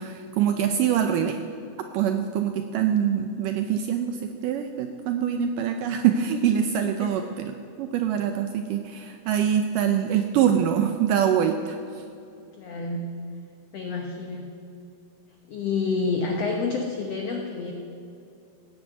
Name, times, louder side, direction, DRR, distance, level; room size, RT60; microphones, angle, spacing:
voice 1, 0.0-1.4 1.9-7.5 7.8-12.0, right 9 dB, 80° right, 6 dB, 1.9 m, -24 dB
voice 2, 7.0-7.3 12.6-13.2 13.7-14.6 15.5-17.7, left 4 dB, 80° left, 3 dB, 1.4 m, -29 dB
16.5 x 9.7 x 7.8 m, 2.6 s
omnidirectional pair, 4.4 m